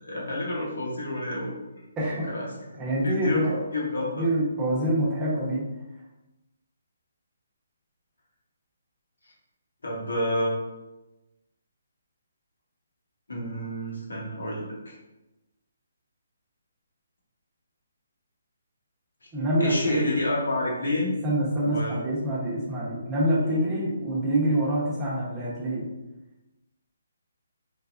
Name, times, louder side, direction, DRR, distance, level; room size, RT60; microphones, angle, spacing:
voice 1, 0.0-1.5 2.3-2.5 3.0-3.5 3.7-4.2 9.8-10.5 13.3-14.9 19.6-21.1 21.6-22.0 23.4-23.6, left 1 dB, 85° left, -3 dB, 1.0 m, -29 dB
voice 2, 2.0-2.3 2.7-3.6 4.0-5.6 19.3-20.1 21.2-25.9, right 1 dB, 15° right, -7 dB, 0.9 m, -26 dB
3.3 x 2.2 x 2.4 m, 1.0 s
hypercardioid pair, 150°, 0 cm